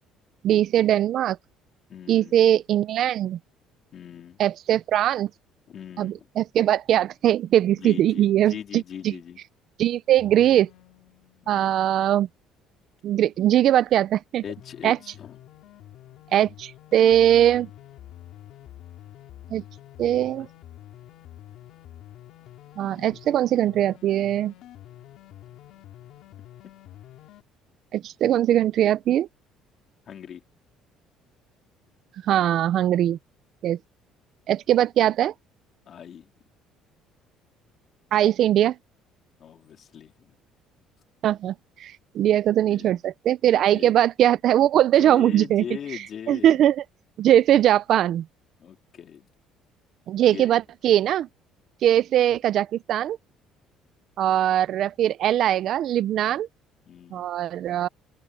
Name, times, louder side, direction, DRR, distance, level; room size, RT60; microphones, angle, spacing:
voice 1, 0.4-1.4 2.1-3.4 4.4-5.3 6.0-9.1 9.8-10.7 11.5-12.3 13.0-14.4 14.8-15.0 16.3-17.7 19.5-19.6 20.0-20.5 22.8-24.5 27.9-29.3 32.3-33.2 33.6-33.8 34.5-35.3 38.1-38.8 41.2-41.5 41.8-45.6 45.9-46.8 47.2-48.3 50.1-51.3 51.8-53.2 54.2-56.5 57.1-57.9, right 11 dB, 45° right, 0.4 m, -21 dB
voice 2, 1.9-2.4 3.9-4.4 5.7-6.3 7.7-9.4 11.4-11.8 14.4-15.4 26.6-26.7 30.1-30.4 35.9-36.3 39.4-40.3 42.7-43.0 43.5-44.0 45.0-46.6 48.6-49.3 50.3-50.5 56.2-56.4 56.9-57.3, left 8 dB, 40° left, 3.5 m, -40 dB
sound 1, 10.1-12.2 14.5-27.4, left 13 dB, 60° left, 2.2 m, -47 dB
cardioid pair, 165°, 0 cm